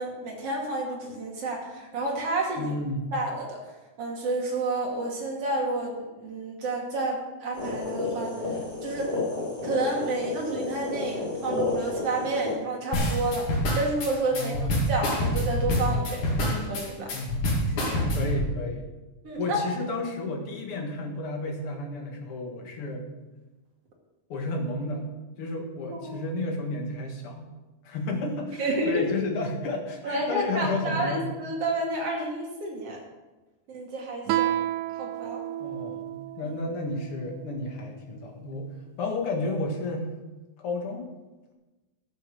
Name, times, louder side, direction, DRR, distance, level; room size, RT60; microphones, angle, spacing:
voice 1, 0.0-2.7 3.1-3.6 4.0-8.6 8.8-9.1 9.6-13.5 13.7-14.6 14.9-17.1 17.7-18.2 19.2-19.6 25.8-26.2 28.6-29.0 30.0-33.0 33.7-34.6 34.9-35.4 36.4-36.6, right 2 dB, 50° right, -1 dB, 3.3 m, -30 dB
voice 2, 2.6-3.1 14.3-14.9 17.1-17.5 18.1-18.9 19.4-23.1 24.3-25.1 25.4-27.5 27.8-31.2 35.6-38.7 39.0-40.1 40.6-41.1, left 2 dB, 50° left, 2 dB, 2.4 m, -32 dB
sound 1, 7.5-12.5, left 3 dB, 15° left, 4.1 m, -31 dB
sound 2, 12.9-18.4, left 1 dB, 75° left, 4.0 m, -26 dB
Guitar, 34.3-37.5, right 13 dB, 80° right, 1.9 m, -31 dB
11.5 x 8.6 x 6.8 m, 1.1 s
omnidirectional pair, 3.5 m